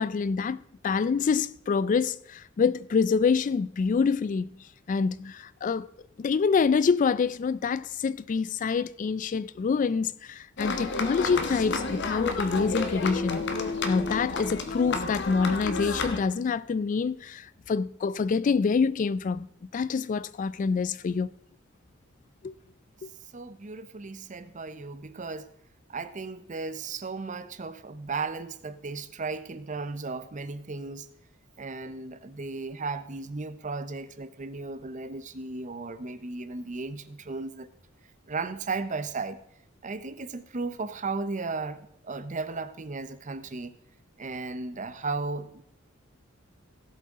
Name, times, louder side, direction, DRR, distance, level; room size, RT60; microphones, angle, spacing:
voice 1, 0.0-4.5 4.9-5.9 6.2-13.5 13.8-19.5 19.7-21.3 22.4-22.5 23.0-23.1, left 5 dB, 40° left, 0.3 m, -26 dB
sound 1, 10.6-16.2, left 3 dB, 60° left, 1.3 m, -31 dB
voice 2, 23.3-25.5 25.9-31.1 31.6-37.7 38.3-39.4 39.8-43.7 44.2-45.6, right 3 dB, 40° right, 0.7 m, -35 dB
17.5 x 7.8 x 3.7 m
head